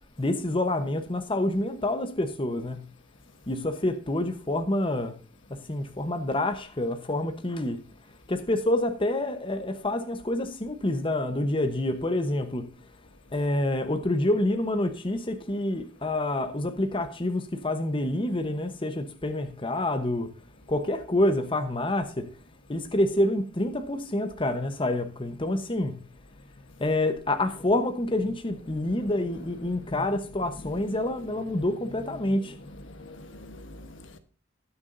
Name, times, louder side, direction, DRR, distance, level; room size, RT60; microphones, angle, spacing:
voice 1, 0.2-2.8 3.5-5.1 5.5-7.8 8.3-12.7 13.3-20.3 20.7-22.3 22.7-26.0 26.8-32.5, left 1 dB, 25° left, 1.0 m, -27 dB
voice 2, 29.7-30.0 30.6-30.7 32.9-34.2, left 1 dB, 65° left, 1.2 m, -43 dB
20.0 x 7.0 x 2.6 m
head